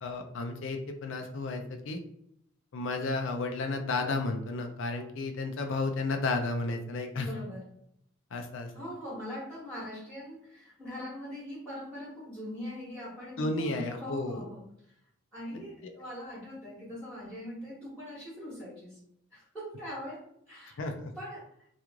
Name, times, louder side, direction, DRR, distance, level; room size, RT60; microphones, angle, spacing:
voice 1, 0.0-2.0 2.7-7.3 8.3-8.7 13.4-14.5 15.5-15.6 20.8-21.1, left 3 dB, 65° left, 5 dB, 0.4 m, -32 dB
voice 2, 7.1-7.7 8.7-14.6 15.3-19.0 19.3-20.8 21.1-21.5, left 1 dB, 5° left, -11 dB, 1.2 m, -42 dB
3.0 x 2.4 x 3.5 m, 0.72 s
head